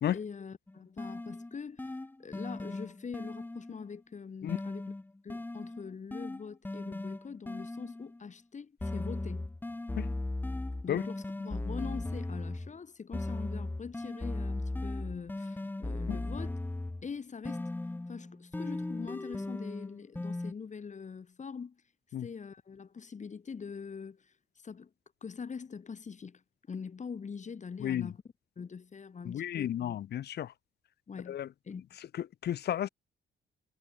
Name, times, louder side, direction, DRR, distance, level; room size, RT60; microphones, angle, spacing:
voice 1, 0.1-4.9 5.2-9.5 10.8-16.6 17.0-17.7 18.1-21.8 22.2-24.3 24.6-24.9 25.2-26.4 26.7-28.2 28.6-30.0 31.1-31.4 31.6-31.8, left 5 dB, 35° left, 2.4 m, -43 dB
sound 1, 0.7-3.9 4.5-8.2 8.8-12.8 13.1-17.1 17.4-20.5, left 2 dB, 10° left, 0.7 m, -37 dB
voice 2, 29.3-30.5 31.3-31.5 32.4-32.9, left 11 dB, 55° left, 0.7 m, -32 dB
cardioid pair, 90°, 20 cm